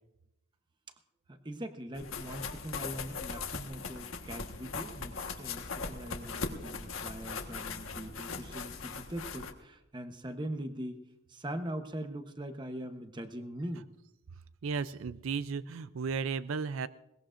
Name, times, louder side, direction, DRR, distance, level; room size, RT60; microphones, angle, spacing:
voice 1, 1.3-13.9, right 1 dB, 20° right, 7 dB, 0.9 m, -41 dB
sound 1, 1.9-9.5, left 4 dB, 85° left, 1.4 m, -40 dB
voice 2, 14.6-16.9, right 5 dB, 80° right, 15 dB, 0.4 m, -34 dB
21.5 x 19.5 x 2.5 m, 0.87 s
head